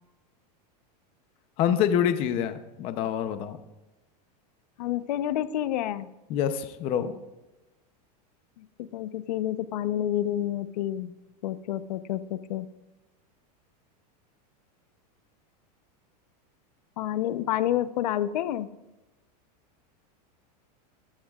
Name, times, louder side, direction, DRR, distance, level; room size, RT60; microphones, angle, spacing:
voice 1, 1.6-3.6 6.3-7.2, left 9 dB, 25° left, 10 dB, 0.7 m, -26 dB
voice 2, 4.8-6.1 8.6-11.1 11.4-12.7 17.0-18.7, left 12 dB, 80° left, 12 dB, 0.9 m, -29 dB
21.0 x 15.0 x 2.4 m, 1.0 s
supercardioid pair, 180°, 21 cm